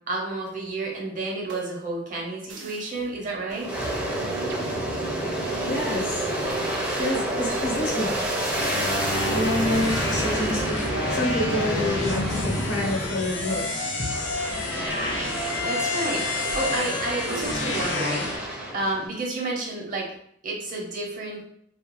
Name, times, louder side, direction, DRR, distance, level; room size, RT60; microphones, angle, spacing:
voice 1, 0.1-3.7 15.6-18.3 18.7-20.1 20.4-21.4, right 2 dB, 45° right, -1 dB, 0.8 m, -30 dB
sound 1, 1.5-2.0 2.5-3.1 3.5-3.8 4.5-5.7 6.5-6.7 7.5-7.7 8.5-8.9 9.5-9.6 10.5-10.6 11.5-11.8 12.5-13.1 13.5-14.8 15.5-15.7 16.5-16.9, right 2 dB, 70° right, 0.5 m, -43 dB
Aircraft, 3.6-13.6 14.1-19.1, right 1 dB, 10° right, 0.5 m, -29 dB
voice 2, 5.3-6.3 7.0-8.3 9.3-13.7 14.0-14.1, left 1 dB, 70° left, -3 dB, 1.0 m, -28 dB
sound 2, 8.5-18.4, left 2 dB, 85° left, 0.6 m, -29 dB
2.4 x 2.3 x 3.0 m, 0.67 s
head